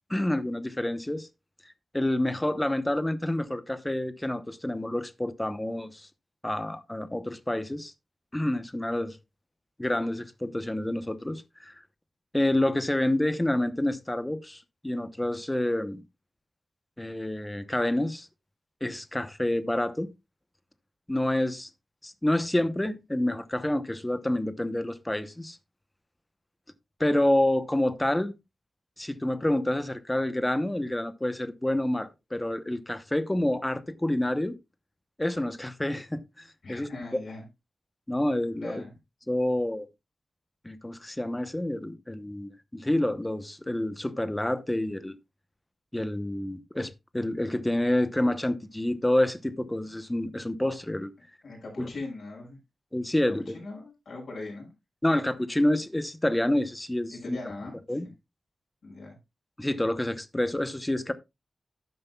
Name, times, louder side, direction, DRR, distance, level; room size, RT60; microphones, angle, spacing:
voice 1, 0.1-1.3 1.9-6.1 6.4-7.9 8.3-9.2 9.8-11.7 12.3-16.0 17.0-18.3 18.8-20.1 21.1-21.7 22.0-25.6 27.0-28.3 29.0-34.5 35.2-36.9 38.1-38.8 39.3-39.9 40.6-45.1 45.9-51.1 51.8-51.9 52.9-53.6 55.0-57.4 57.9-58.1 59.6-61.1, left 1 dB, 10° left, 0.8 m, -28 dB
voice 2, 36.6-37.5 38.6-38.9 51.4-52.6 53.5-54.7 57.1-57.8 58.8-59.2, left 3 dB, 60° left, 5.9 m, -40 dB
12.5 x 9.5 x 2.3 m
wide cardioid pair, 170°, 0 cm